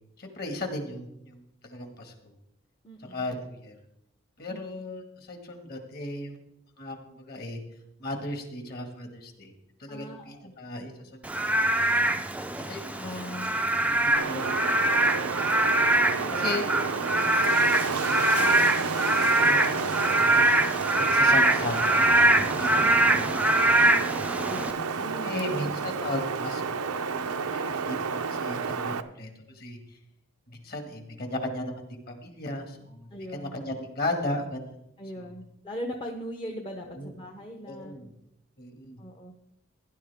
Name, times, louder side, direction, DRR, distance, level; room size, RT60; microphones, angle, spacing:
voice 1, 0.2-1.4 1.6-2.1 3.1-3.8 4.4-6.4 6.8-7.6 8.0-9.5 9.8-10.9 11.3-11.4 11.8-11.9 12.7-13.5 13.8-14.6 15.2-15.3 16.4-18.4 18.9-19.8 20.2-20.6 21.0-22.2 22.6-22.8 23.1-23.2 25.2-29.3 29.6-29.8 30.5-34.6 37.0-37.1 37.7-38.1 38.6-39.0, left 2 dB, 45° left, 4 dB, 2.0 m, -36 dB
voice 2, 2.8-3.3 4.5-4.6 9.9-10.5 16.1-16.6 22.7-23.3 24.4-25.6 33.1-33.6 35.0-38.1 39.0-39.3, equal, 20° left, 2 dB, 0.8 m, -40 dB
Frog / Rain, 11.2-24.7, right 2 dB, 5° right, 0.4 m, -23 dB
Wind, 14.2-29.0, right 5 dB, 90° right, 0.7 m, -30 dB
16.5 x 10.5 x 3.6 m, 0.80 s
head